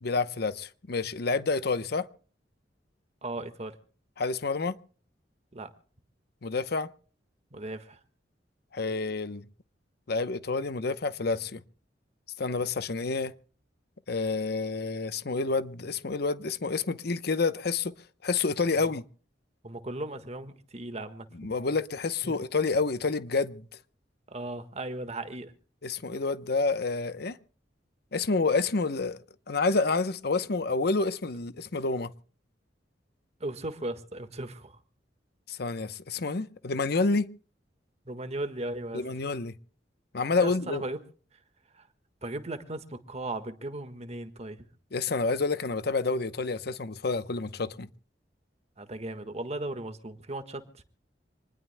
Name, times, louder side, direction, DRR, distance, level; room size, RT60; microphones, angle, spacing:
voice 1, 0.0-2.1 4.2-4.8 6.4-6.9 8.7-9.4 10.1-11.6 12.4-13.3 14.1-17.9 18.2-19.0 21.4-23.7 25.8-27.4 28.1-29.2 29.5-32.1 35.5-37.3 38.9-39.5 40.1-40.8 44.9-47.9, left 3 dB, 60° left, 0.8 m, -28 dB
voice 2, 3.2-3.8 5.5-5.7 7.5-8.0 18.8-18.9 19.6-21.5 22.2-22.4 24.3-25.5 33.4-34.8 38.0-39.1 40.4-41.0 41.7-41.9 42.2-44.7 48.8-50.8, right 2 dB, 40° right, 1.6 m, -37 dB
27.0 x 20.0 x 2.2 m
head